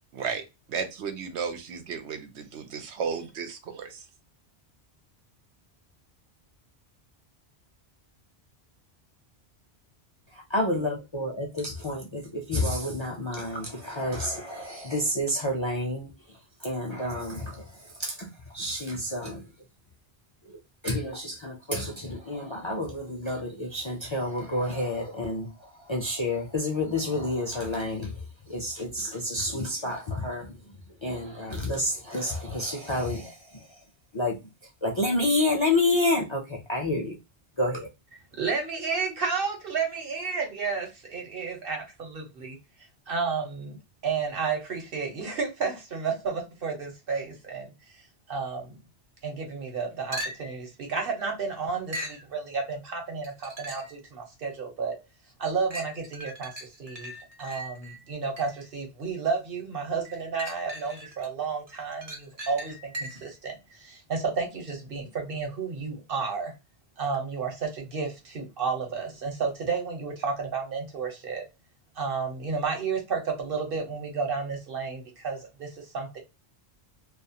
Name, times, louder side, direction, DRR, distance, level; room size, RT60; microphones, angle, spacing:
voice 1, 0.1-4.0, right 6 dB, 90° right, 0.9 m, -33 dB
voice 2, 10.3-16.1 16.6-19.5 20.5-20.6 20.8-28.1 28.5-30.6 31.0-33.7 34.1-34.4 34.8-37.2 37.6-37.9, left 1 dB, 40° left, 0.4 m, -29 dB
voice 3, 38.4-42.6 43.1-43.8 44.0-48.0 48.3-48.8 49.2-55.0 55.4-57.1 57.4-66.5 67.0-71.4 72.0-76.2, right 5 dB, 60° right, 1.1 m, -32 dB
sound 1, 50.1-50.7 51.9-52.3 53.2-54.0 54.6-54.7 55.7-58.7 60.0-61.3 61.7-63.4 67.1-67.2, equal, 40° right, 0.7 m, -39 dB
2.4 x 2.4 x 2.7 m
omnidirectional pair, 1.1 m